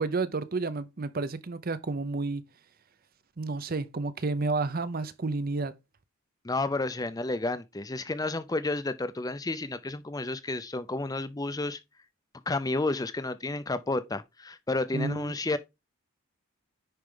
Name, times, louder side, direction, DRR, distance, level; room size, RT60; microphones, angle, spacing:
voice 1, 0.0-2.4 3.4-5.7 14.9-15.3, right 3 dB, 40° right, 0.6 m, -31 dB
voice 2, 6.4-11.8 12.5-15.6, left 2 dB, 15° left, 0.5 m, -31 dB
10.0 x 4.6 x 3.8 m
head